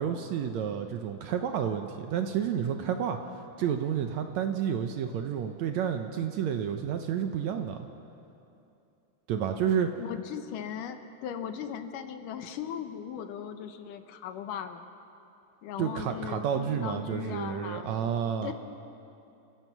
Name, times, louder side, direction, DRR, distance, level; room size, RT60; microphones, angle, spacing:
voice 1, 0.0-3.2 3.6-7.8 9.3-9.9 15.8-18.5, right 8 dB, 70° right, 6 dB, 1.8 m, -30 dB
voice 2, 10.0-14.8 15.6-18.5, left 8 dB, 80° left, 8 dB, 2.5 m, -38 dB
29.5 x 16.0 x 6.0 m, 2.7 s
omnidirectional pair, 3.8 m